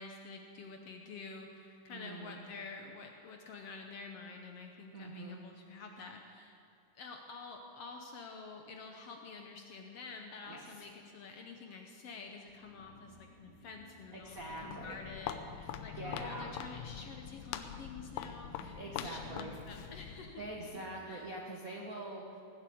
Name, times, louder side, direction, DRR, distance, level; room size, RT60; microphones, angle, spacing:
voice 1, 0.0-6.6 6.9-20.5 20.7-21.3, left 4 dB, 65° left, 3 dB, 1.6 m, -49 dB
voice 2, 1.9-2.4 4.9-5.4 10.5-10.9 14.1-15.0 15.9-16.5 18.5-19.6 20.4-22.4, right 2 dB, 75° right, -1 dB, 0.8 m, -44 dB
sound 1, 12.4-21.0, left 2 dB, 50° right, 4.4 m, -59 dB
Walk footsteps, 14.3-20.4, left 9 dB, 85° left, 2.3 m, -44 dB
18.0 x 8.1 x 8.5 m, 2.6 s
omnidirectional pair, 3.7 m